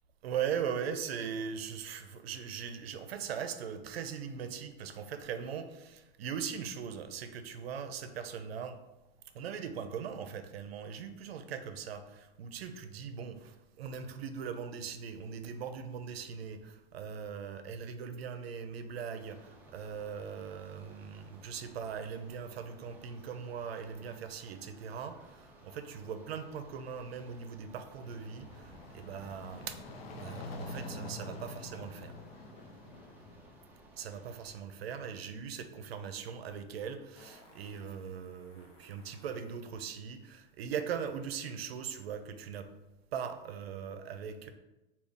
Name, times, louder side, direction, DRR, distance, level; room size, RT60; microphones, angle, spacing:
voice 1, 0.2-8.8 9.3-29.8 30.2-32.1 33.9-42.7 43.1-44.5, right 7 dB, 90° right, 9 dB, 0.5 m, -40 dB
sound 1, 19.2-34.6, right 1 dB, 5° right, 0.3 m, -58 dB
sound 2, 27.7-33.7, left 2 dB, 80° left, 0.7 m, -46 dB
Fart, 37.2-39.7 42.1-42.2, left 1 dB, 40° left, 0.8 m, -60 dB
3.4 x 2.3 x 3.6 m, 1.0 s
hypercardioid pair, 130°, 30 cm